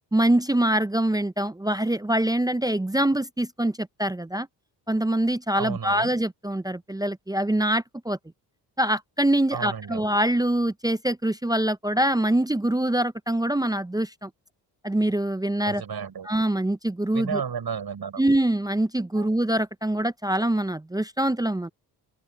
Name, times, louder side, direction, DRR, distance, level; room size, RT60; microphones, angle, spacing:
voice 1, 0.1-4.5 4.9-8.2 8.8-14.3 14.8-15.8 16.2-17.4 18.2-21.7, right 1 dB, 10° right, 0.7 m, -24 dB
voice 2, 5.6-6.1 9.5-10.0 15.7-16.3 17.1-18.2 19.2-19.3, right 7 dB, 55° right, 7.0 m, -32 dB
open air
supercardioid pair, 60°, 44 cm